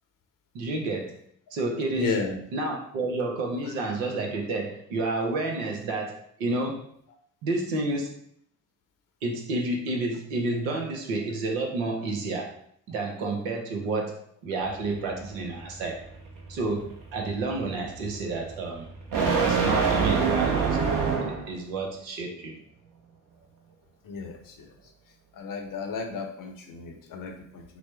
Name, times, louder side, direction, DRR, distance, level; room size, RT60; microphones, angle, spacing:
voice 1, 0.5-1.2 1.5-2.2 2.5-6.8 7.4-8.1 9.2-12.5 12.9-16.0 16.5-18.9 19.4-20.8 21.2-22.6, right 2 dB, 70° right, 2 dB, 0.9 m, -30 dB
voice 2, 1.9-2.4 24.0-24.7 25.3-27.8, left 4 dB, 50° left, 3 dB, 0.9 m, -33 dB
sound 1, 14.6-21.6, right 5 dB, 50° right, 1.0 m, -27 dB
6.0 x 2.0 x 3.3 m, 0.67 s
figure-of-eight pair, 45°, 43 cm